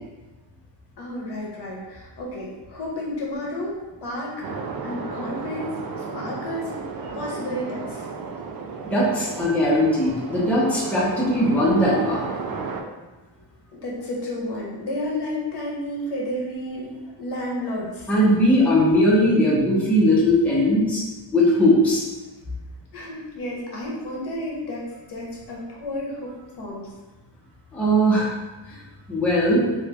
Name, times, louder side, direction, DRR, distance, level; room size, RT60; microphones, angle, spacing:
voice 1, 1.0-4.5 4.8-6.7 7.1-8.1 13.7-16.9 17.2-18.1 22.9-26.9, left 1 dB, 60° left, -4 dB, 0.9 m, -31 dB
sound 1, 4.4-12.8, right 4 dB, 50° right, 0.4 m, -34 dB
voice 2, 8.9-12.2 18.1-21.0 21.3-22.0 27.7-28.3 29.1-29.6, equal, 5° left, -7 dB, 0.9 m, -19 dB
3.2 x 2.5 x 3.2 m, 1.1 s
cardioid pair, 120°, 46 cm